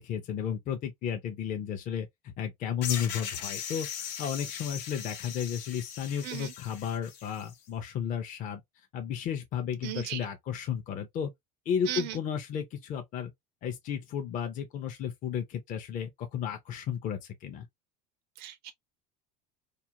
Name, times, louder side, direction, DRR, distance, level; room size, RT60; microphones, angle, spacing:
voice 1, 0.0-8.6 8.9-11.3 11.7-13.3 13.6-17.7, left 8 dB, 40° left, 0.5 m, -33 dB
sound 1, 2.8-7.5, left 8 dB, 80° left, 0.8 m, -39 dB
voice 2, 9.8-10.3 11.9-12.2 18.4-18.7, right 13 dB, 50° right, 0.4 m, -36 dB
2.4 x 2.1 x 2.8 m
supercardioid pair, 125°, 21 cm